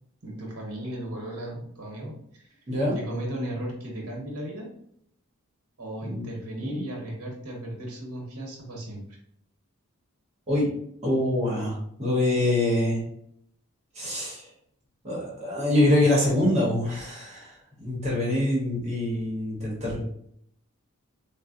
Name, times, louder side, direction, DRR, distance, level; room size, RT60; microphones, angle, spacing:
voice 1, 0.2-2.1 2.5-2.6 2.9-4.7 5.8-9.0, right 1 dB, 90° right, 0 dB, 0.9 m, -35 dB
voice 2, 11.0-13.0 13.9-14.4 15.0-20.1, left 1 dB, 30° right, -4 dB, 0.9 m, -25 dB
3.8 x 2.1 x 2.5 m, 0.70 s
head